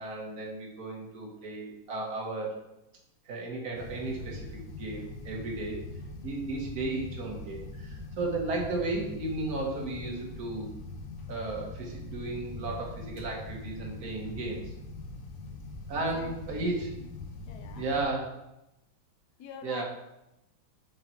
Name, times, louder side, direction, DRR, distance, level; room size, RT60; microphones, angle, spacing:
voice 1, 0.0-2.6 3.2-5.8 6.2-10.7 11.3-14.7 15.9-16.9 17.7-18.4 19.6-19.8, right 2 dB, 45° right, -1 dB, 1.6 m, -34 dB
sound 1, 3.7-18.0, left 3 dB, 85° left, 1.8 m, -42 dB
voice 2, 16.1-17.1 17.5-17.9 19.4-19.8, left 6 dB, 70° left, 6 dB, 1.0 m, -46 dB
6.6 x 3.8 x 4.3 m, 0.89 s
omnidirectional pair, 2.4 m